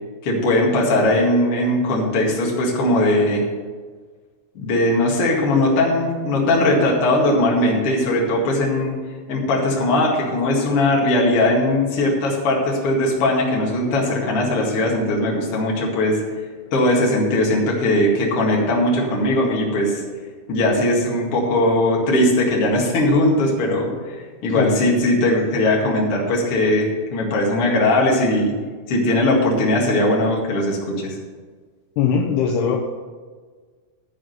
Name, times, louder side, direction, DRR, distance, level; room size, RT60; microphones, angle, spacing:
voice 1, 0.2-3.4 4.6-8.9 9.3-16.2 16.7-20.0 20.5-24.2 24.4-28.5 28.9-31.2, left 1 dB, 50° left, -2 dB, 1.7 m, -19 dB
voice 2, 32.0-32.8, left 7 dB, 90° left, -1 dB, 2.3 m, -20 dB
12.0 x 5.0 x 7.9 m, 1.5 s
omnidirectional pair, 5.8 m